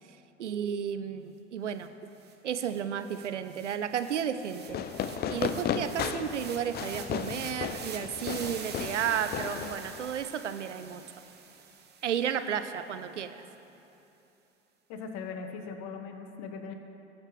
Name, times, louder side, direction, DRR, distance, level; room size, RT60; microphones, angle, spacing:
voice 1, 0.4-1.9 2.4-4.8 5.3-11.0 12.0-13.4, right 8 dB, 90° right, 10 dB, 0.6 m, -33 dB
sound 1, 1.8-1.9 2.2-12.5, right 6 dB, 30° right, 1.1 m, -46 dB
Fireworks, 4.7-10.2, left 8 dB, 30° left, 0.6 m, -35 dB
voice 2, 14.9-16.7, left 5 dB, 50° left, 6 dB, 1.3 m, -39 dB
18.5 x 7.4 x 3.3 m, 3.0 s
hypercardioid pair, 85°, 35 cm